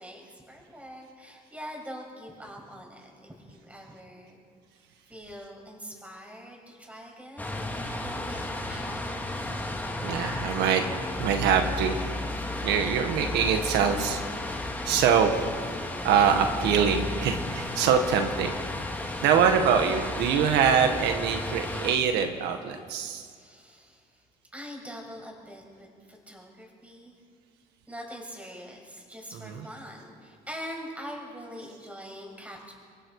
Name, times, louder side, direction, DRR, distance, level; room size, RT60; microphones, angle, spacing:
voice 1, 0.0-4.4 5.1-7.5 8.0-9.5 23.3-24.2 24.5-27.2 27.9-32.7, equal, 10° right, 0 dB, 6.7 m, -43 dB
sound 1, 7.4-21.9, left 2 dB, 10° left, 2.5 m, -33 dB
voice 2, 10.0-10.8 11.2-12.0 12.6-14.2 14.8-15.3 15.7-18.6 19.0-23.3 29.3-29.7, right 7 dB, 85° right, 5 dB, 1.8 m, -24 dB
28.5 x 23.0 x 4.9 m, 2.2 s
cardioid pair, 110°, 17 cm